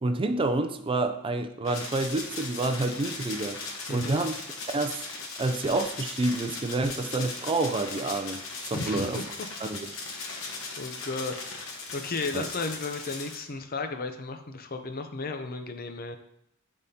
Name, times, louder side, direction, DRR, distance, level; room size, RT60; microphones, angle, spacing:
voice 1, 0.0-3.6 3.9-4.3 4.7-5.1 5.4-9.2 9.6-9.8 12.3-12.5, right 2 dB, 25° right, 7 dB, 0.4 m, -28 dB
sound 1, 1.6-13.4, left 3 dB, 65° left, 1.2 m, -38 dB
voice 2, 3.9-4.2 8.7-9.3 10.1-11.7 11.9-16.2, left 3 dB, 45° left, 7 dB, 0.6 m, -34 dB
9.9 x 3.6 x 2.8 m, 0.75 s
head